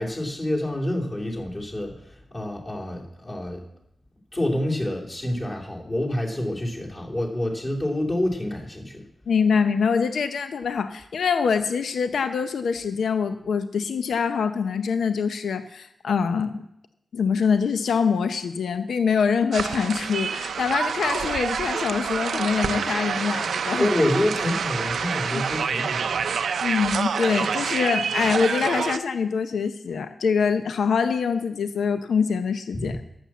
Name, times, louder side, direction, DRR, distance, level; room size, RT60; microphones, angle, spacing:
voice 1, 0.0-3.6 4.3-9.0 23.8-26.4 32.7-32.9, left 1 dB, 30° left, -2 dB, 2.8 m, -27 dB
voice 2, 9.3-16.6 17.1-23.9 25.3-25.4 26.6-33.0, left 6 dB, 90° left, 9 dB, 0.6 m, -24 dB
sound 1, 19.5-29.0, right 6 dB, 85° right, 0.5 m, -27 dB
11.5 x 7.3 x 7.3 m, 0.78 s
wide cardioid pair, 100°, 0 cm